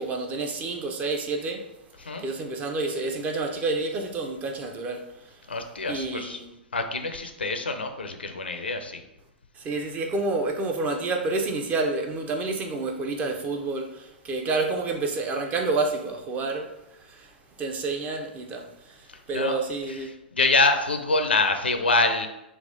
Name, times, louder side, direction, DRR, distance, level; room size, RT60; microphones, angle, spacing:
voice 1, 0.0-1.6 2.0-5.4 5.9-6.5 9.6-16.7 17.0-20.1, right 3 dB, 25° right, 0.6 m, -29 dB
voice 2, 5.5-6.4 6.7-9.0 19.3-19.5 20.3-22.3, left 3 dB, 85° left, 0.5 m, -25 dB
3.4 x 2.4 x 4.0 m
figure-of-eight pair, 105°, 6 cm